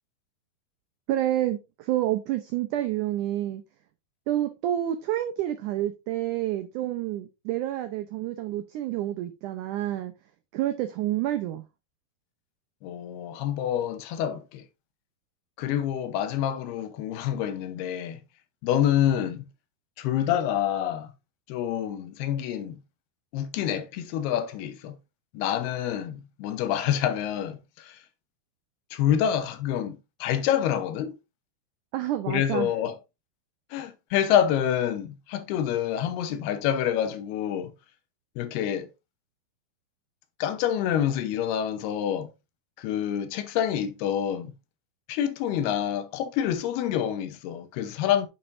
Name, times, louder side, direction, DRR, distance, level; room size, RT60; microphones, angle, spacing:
voice 1, 1.1-3.6 4.3-10.1 10.5-11.6 31.9-32.7, right 13 dB, 90° right, 1.8 m, -28 dB
voice 2, 12.8-14.6 15.6-18.2 18.6-19.5 20.0-21.1 21.5-22.8 23.3-25.0 25.3-28.0 28.9-31.2 32.3-33.0 33.7-37.7 38.4-38.9 40.4-42.3 42.8-44.5 45.1-48.3, left 10 dB, 85° left, 2.8 m, -27 dB
8.7 x 7.0 x 2.6 m
omnidirectional pair, 4.5 m